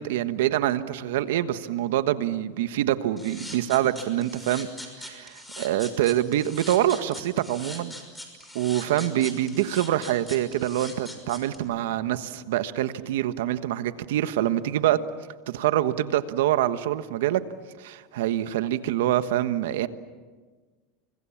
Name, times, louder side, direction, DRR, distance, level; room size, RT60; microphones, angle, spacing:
voice 1, 0.0-4.7 5.0-7.9 8.5-15.0 15.5-17.4 17.8-19.9, right 13 dB, 85° right, 12 dB, 1.3 m, -25 dB
sound 1, 3.2-11.6, left 1 dB, 5° left, 5.9 m, -41 dB
29.5 x 25.0 x 7.3 m, 1.4 s
supercardioid pair, 125°, 0 cm